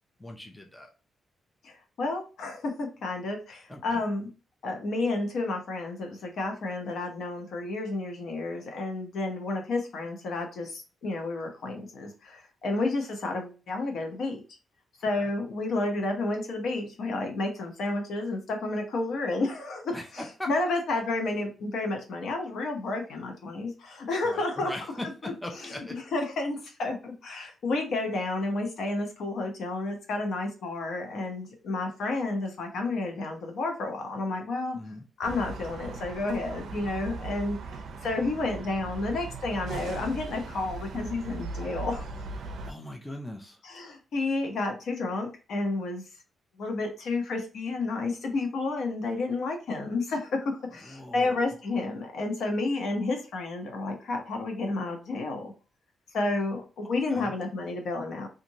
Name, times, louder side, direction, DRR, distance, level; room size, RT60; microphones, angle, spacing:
voice 1, 0.2-0.9 3.7-4.0 15.2-15.3 19.9-20.5 24.2-26.0 34.7-35.1 42.4-43.6 50.8-51.5 57.1-57.3, left 1 dB, 10° left, 2 dB, 0.4 m, -40 dB
voice 2, 1.6-4.3 4.6-14.4 15.0-24.8 25.2-34.8 35.2-42.1 43.6-46.1 46.6-55.5 56.1-58.3, left 2 dB, 70° left, 3 dB, 0.9 m, -31 dB
sound 1, 35.2-42.7, right 3 dB, 65° right, 0.4 m, -38 dB
2.7 x 2.5 x 2.8 m, 0.34 s
wide cardioid pair, 145°, 0 cm